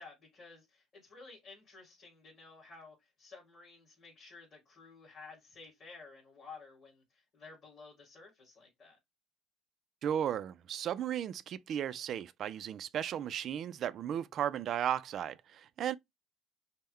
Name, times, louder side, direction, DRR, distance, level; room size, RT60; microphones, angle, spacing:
voice 1, 0.0-9.0, left 4 dB, 35° left, 2.7 m, -53 dB
voice 2, 10.0-15.9, right 9 dB, 45° right, 0.3 m, -35 dB
5.5 x 2.1 x 3.2 m
cardioid pair, 150°, 0 cm